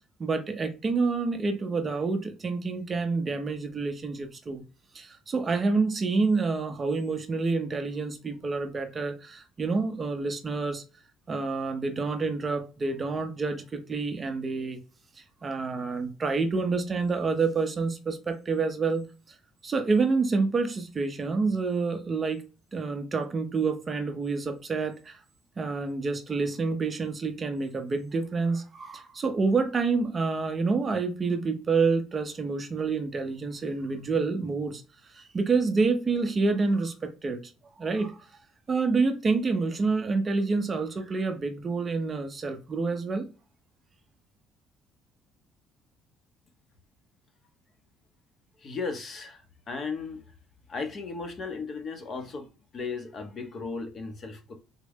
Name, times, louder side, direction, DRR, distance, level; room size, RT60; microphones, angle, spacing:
voice 1, 0.2-4.6 4.9-10.8 11.3-14.8 15.2-19.4 19.6-22.4 22.7-25.2 25.6-37.5 37.8-38.3 38.7-43.3, right 4 dB, 25° right, 0.5 m, -28 dB
voice 2, 48.6-50.3 50.7-52.5 52.7-54.6, left 4 dB, 35° left, 0.6 m, -36 dB
3.5 x 2.0 x 3.4 m
cardioid pair, 150°, 0 cm